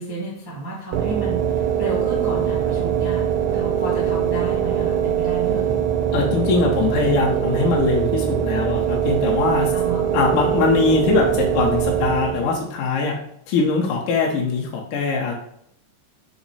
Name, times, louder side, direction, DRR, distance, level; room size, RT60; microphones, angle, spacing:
voice 1, 0.0-3.2 3.5-5.8 9.7-10.0, right 3 dB, 25° right, -7 dB, 0.5 m, -31 dB
sound 1, 0.9-12.6, right 9 dB, 85° right, 1.7 m, -22 dB
voice 2, 6.1-9.7 10.1-13.2 13.5-15.3, left 4 dB, 75° left, -1 dB, 2.1 m, -21 dB
6.0 x 2.0 x 4.0 m, 0.70 s
omnidirectional pair, 3.9 m